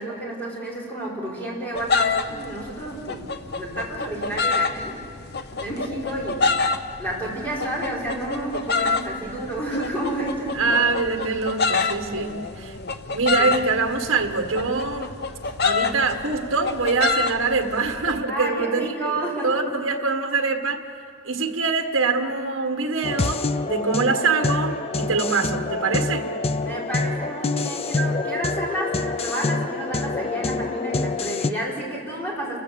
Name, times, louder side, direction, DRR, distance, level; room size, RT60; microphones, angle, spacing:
voice 1, 0.0-4.9 5.6-6.5 7.0-10.6 13.4-13.5 15.4-15.5 18.3-19.6 26.6-32.6, right 1 dB, 10° left, -5 dB, 4.9 m, -30 dB
sound 1, 1.7-18.2, left 4 dB, 50° left, 0.9 m, -27 dB
voice 2, 10.5-12.7 13.1-15.1 15.6-20.8 21.2-26.3, right 4 dB, 60° right, 5 dB, 1.4 m, -24 dB
sound 2, 23.0-31.5, left 3 dB, 30° left, 0.4 m, -26 dB
29.0 x 15.0 x 7.0 m, 2.3 s
head